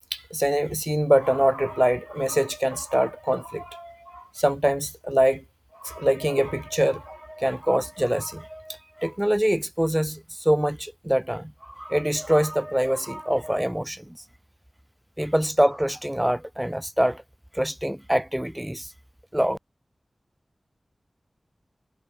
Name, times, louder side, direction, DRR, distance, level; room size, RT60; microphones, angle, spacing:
voice 1, 0.1-5.4 5.8-14.2 15.2-17.2 17.5-18.9 19.3-19.6, equal, 10° right, 2.5 m, -24 dB
wide cardioid pair, 70°, 0 cm